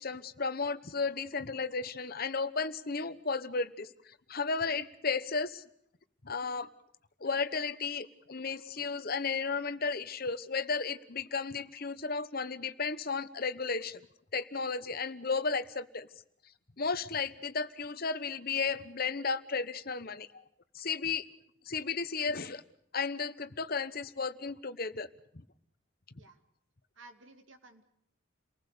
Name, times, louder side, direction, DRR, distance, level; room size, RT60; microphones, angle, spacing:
voice 1, 0.0-5.6 6.2-6.7 7.2-14.0 14.3-16.1 16.8-20.4 20.7-21.3 21.7-22.6 22.9-25.1 25.3-25.4, left 4 dB, 45° left, 12 dB, 1.1 m, -34 dB
voice 2, 27.0-27.8, right 2 dB, 70° right, 6 dB, 2.6 m, -55 dB
29.5 x 19.5 x 6.8 m, 0.72 s
head